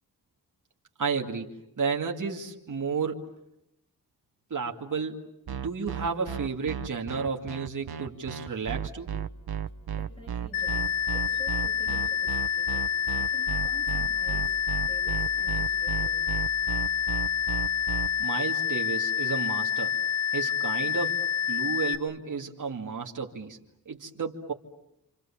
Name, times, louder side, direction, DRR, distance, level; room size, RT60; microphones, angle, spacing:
voice 1, 1.0-1.5 1.8-3.2 4.5-5.2 5.5-9.1 18.2-19.9 20.3-21.2 21.5-23.6 23.9-24.5, right 5 dB, 55° right, 0 dB, 2.6 m, -32 dB
sound 1, 5.5-18.1, right 8 dB, 85° right, 1.2 m, -33 dB
voice 2, 9.9-12.9 13.1-14.6 14.8-16.3, equal, 15° left, -1 dB, 7.9 m, -49 dB
sound 2, 10.5-22.0, left 8 dB, 65° left, 2.7 m, -28 dB
29.5 x 27.5 x 7.3 m, 0.82 s
wide cardioid pair, 175°, 37 cm